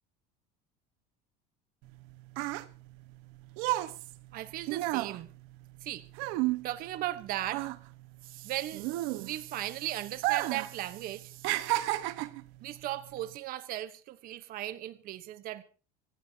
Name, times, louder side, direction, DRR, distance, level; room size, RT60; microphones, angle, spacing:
sound 1, 1.8-7.2 7.5-9.6 10.1-10.7 11.0-12.5 13.2-13.4, right 18 dB, 70° right, 1.2 m, -32 dB
voice 1, 4.3-5.3 5.8-6.1 6.6-7.7 8.2-11.7 12.6-15.6, right 14 dB, 45° right, 1.1 m, -37 dB
26.5 x 14.0 x 2.8 m
cardioid pair, 150°, 20 cm